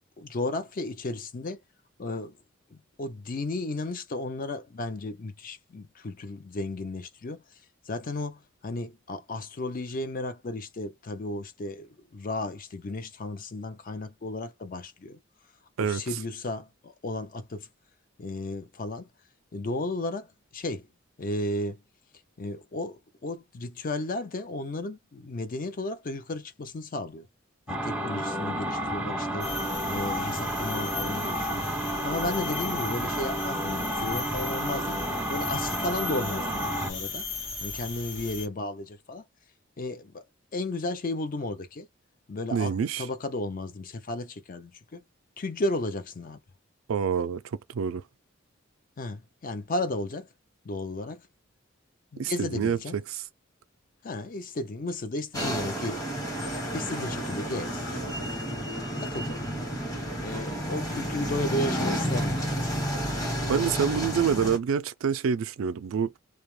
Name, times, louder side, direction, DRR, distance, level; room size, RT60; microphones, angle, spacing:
voice 1, 0.2-1.6 2.0-2.4 2.7-7.4 7.9-15.2 15.8-17.7 18.2-19.1 19.5-20.9 21.2-21.8 22.4-27.3 27.7-29.5 29.8-31.6 32.0-35.0 35.3-37.3 37.6-39.2 39.8-40.2 40.5-41.9 42.3-45.0 45.4-46.4 49.0-50.3 50.6-51.3 52.1-53.0 54.0-56.0 56.7-58.2 59.0-59.5 60.2-62.7, left 2 dB, 45° left, 0.5 m, -34 dB
sound 1, 27.7-36.9, right 1 dB, 5° right, 0.5 m, -31 dB
sound 2, 29.4-38.5, left 4 dB, 65° left, 1.0 m, -37 dB
voice 2, 42.5-43.1 46.9-47.4 47.7-48.0 52.2-53.2 63.5-66.2, right 7 dB, 85° right, 0.4 m, -27 dB
sound 3, 55.3-64.6, equal, 20° left, 1.0 m, -31 dB
2.3 x 2.0 x 3.1 m
head